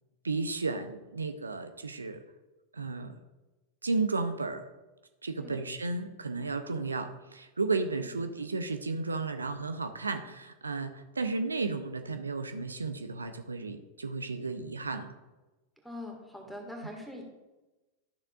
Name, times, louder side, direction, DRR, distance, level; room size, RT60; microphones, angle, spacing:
voice 1, 0.2-2.2 2.7-3.1 3.8-4.7 5.2-15.1, right 3 dB, 75° right, 8 dB, 0.5 m, -33 dB
voice 2, 8.0-8.3 15.8-17.2, left 1 dB, ahead, 0 dB, 1.7 m, -43 dB
12.5 x 6.6 x 2.4 m, 1.1 s
figure-of-eight pair, 90°, 0 cm